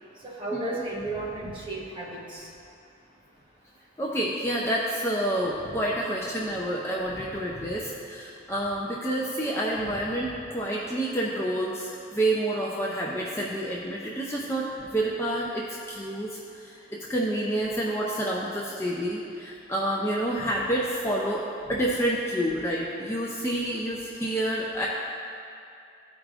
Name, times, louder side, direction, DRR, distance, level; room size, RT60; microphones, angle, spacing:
voice 1, 0.2-2.5 5.6-5.7 7.5-7.7 9.8-10.0, right 2 dB, 25° right, -5 dB, 1.1 m, -34 dB
voice 2, 4.0-21.4 21.7-24.9, right 1 dB, 15° left, -4 dB, 0.5 m, -28 dB
13.5 x 4.8 x 2.5 m, 2.5 s
head